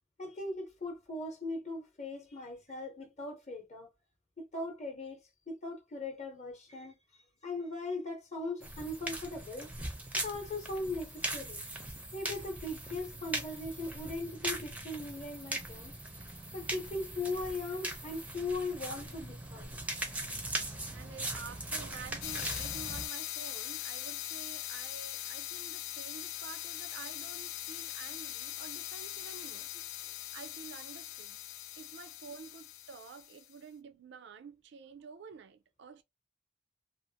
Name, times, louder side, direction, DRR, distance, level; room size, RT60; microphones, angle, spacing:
voice 1, 0.2-3.9 4.4-5.2 5.5-7.0 7.4-9.7 10.2-11.6 12.1-15.9 16.5-19.7, left 2 dB, 35° left, 0.8 m, -39 dB
sound 1, 8.6-23.1, right 1 dB, 5° right, 0.5 m, -40 dB
voice 2, 20.9-29.7 30.3-31.4 31.8-36.0, right 5 dB, 60° right, 0.4 m, -49 dB
sound 2, 22.2-33.5, left 14 dB, 80° left, 0.3 m, -41 dB
2.6 x 2.4 x 2.7 m
head